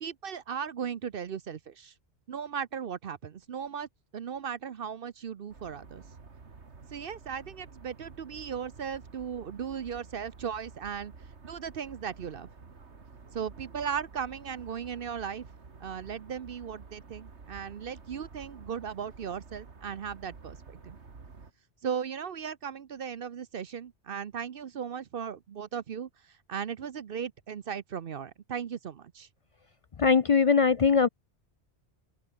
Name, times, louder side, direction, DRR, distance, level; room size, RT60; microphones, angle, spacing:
voice 1, 0.0-1.9 2.3-3.9 4.1-6.0 6.9-11.1 11.4-12.5 13.3-15.5 15.8-21.0 21.8-29.3, right 7 dB, 60° right, 0.9 m, -37 dB
sound 1, 5.5-21.5, right 4 dB, 80° right, 2.3 m, -50 dB
voice 2, 30.0-31.1, left 5 dB, 50° left, 0.4 m, -21 dB
open air
omnidirectional pair, 1.1 m